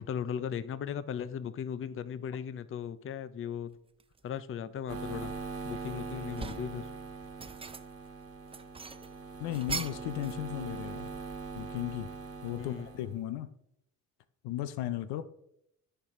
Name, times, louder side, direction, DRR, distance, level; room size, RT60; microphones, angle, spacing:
voice 1, 0.0-3.8 4.2-5.3 5.6-6.9 12.6-12.9, left 8 dB, 35° left, 0.5 m, -37 dB
sound 1, 4.0-4.2 4.8-5.8 6.1-6.8 7.2-8.1 8.5-10.4 10.7-11.7, right 4 dB, 15° right, 0.4 m, -42 dB
sound 2, 4.9-13.1, right 4 dB, 35° right, 1.3 m, -42 dB
voice 2, 9.4-11.1 11.5-12.1 12.4-13.5 14.4-15.2, left 13 dB, 85° left, 0.6 m, -35 dB
9.7 x 4.6 x 3.6 m
supercardioid pair, 70°, 38 cm